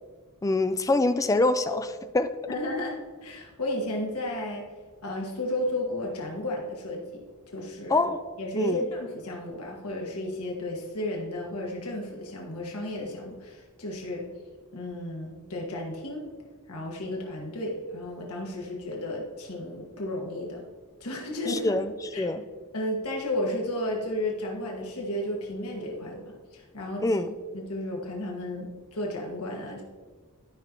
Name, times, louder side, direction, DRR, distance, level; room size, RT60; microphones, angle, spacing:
voice 1, 0.4-2.3 7.9-8.2 8.6-8.9 21.5-22.4 27.0-27.3, left 2 dB, 15° left, 10 dB, 0.3 m, -25 dB
voice 2, 2.5-4.7 5.0-8.0 8.4-14.3 14.7-16.2 16.7-20.6 21.0-21.7 22.1-22.3 22.7-27.0 27.5-29.8, left 1 dB, 90° left, -1 dB, 1.6 m, -33 dB
12.5 x 5.4 x 3.0 m, 1.4 s
head